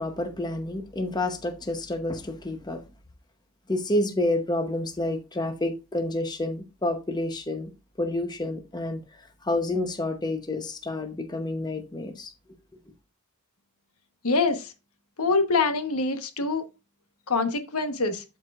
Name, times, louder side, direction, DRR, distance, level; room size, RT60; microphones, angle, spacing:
voice 1, 0.0-2.8 3.7-7.7 8.0-12.3, left 1 dB, 20° left, 0.8 m, -29 dB
voice 2, 14.2-14.7 15.2-16.6 17.3-18.2, left 3 dB, 80° left, 1.1 m, -25 dB
12.0 x 4.6 x 2.4 m
head